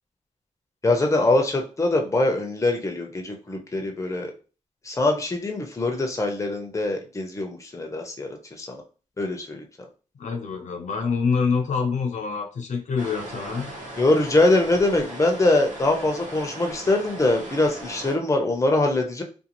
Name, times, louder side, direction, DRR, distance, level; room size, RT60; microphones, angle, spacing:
voice 1, 0.8-4.3 4.9-8.3 8.6-8.8 9.2-9.7 14.0-19.2, left 2 dB, 20° left, 3 dB, 0.6 m, -23 dB
voice 2, 10.2-13.7, left 5 dB, 65° left, 3 dB, 0.5 m, -26 dB
sound 1, 13.0-18.1, right 1 dB, 70° right, 1.0 m, -38 dB
2.5 x 2.3 x 2.9 m, 0.36 s
cardioid pair, 85°, 13 cm